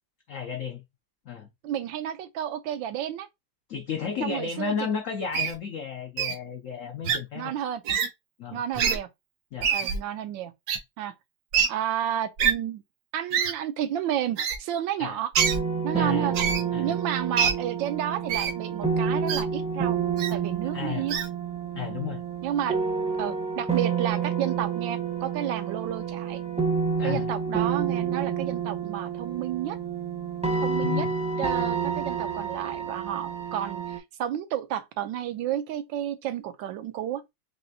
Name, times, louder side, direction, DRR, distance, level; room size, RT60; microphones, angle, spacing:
voice 1, 0.3-0.8 1.3-1.5 3.7-7.5 8.4-8.6 9.5-9.7 15.0-15.2 15.9-16.3 16.7-17.0 20.7-21.1 21.7-22.2 27.0-27.3 30.8-31.1, left 7 dB, 85° left, 0.7 m, -33 dB
voice 2, 1.6-3.3 4.2-4.7 7.3-7.8 8.5-9.1 9.7-10.5 11.0-11.1 11.7-12.8 13.1-15.3 15.8-16.3 16.7-20.0 20.3-21.2 22.4-22.8 23.2-26.4 27.0-29.8 30.6-31.0 31.4-37.2, right 10 dB, 85° right, 1.3 m, -31 dB
Wild animals, 5.3-5.5 6.2-6.4 7.0-7.2 7.9-8.1 8.7-9.0 9.6-10.0 10.7-10.8 11.5-11.7 12.4-12.5 13.3-13.5 14.4-14.6 15.3-15.6 16.3-16.6 17.4-17.5 18.3-18.5 19.3-19.4 20.2-20.3 21.1-21.3, right 7 dB, 65° right, 1.0 m, -24 dB
sound 1, 15.4-34.0, right 6 dB, 5° right, 0.6 m, -29 dB
4.1 x 3.1 x 2.7 m
omnidirectional pair, 2.0 m